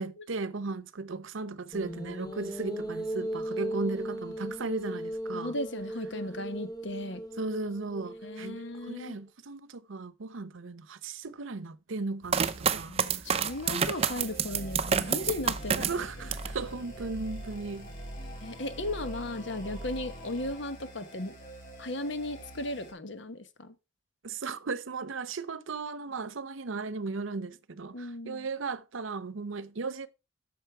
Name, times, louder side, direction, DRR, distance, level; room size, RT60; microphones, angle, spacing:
voice 1, 0.0-5.5 7.4-13.0 13.7-13.9 15.8-17.9 24.2-30.1, right 3 dB, 85° right, 0.7 m, -36 dB
sound 1, 1.7-9.1, equal, 20° left, 0.9 m, -38 dB
voice 2, 5.3-7.2 8.2-9.2 12.9-16.1 18.4-21.3 21.8-23.7 27.9-28.5, left 1 dB, 70° left, 1.2 m, -36 dB
sound 2, 12.3-16.6 17.0-17.7, right 7 dB, 30° right, 0.5 m, -29 dB
sound 3, 13.3-22.9, right 1 dB, 40° left, 2.8 m, -43 dB
8.2 x 6.6 x 4.4 m
head